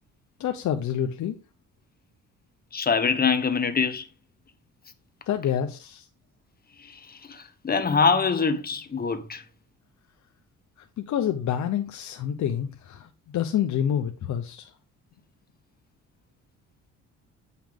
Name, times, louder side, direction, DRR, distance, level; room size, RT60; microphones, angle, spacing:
voice 1, 0.4-1.4 5.3-6.1 11.0-14.7, left 9 dB, 70° left, 0.9 m, -28 dB
voice 2, 2.7-4.1 6.8-9.4, left 5 dB, 30° left, 1.3 m, -24 dB
8.6 x 5.7 x 3.7 m
cardioid pair, 90°, 30 cm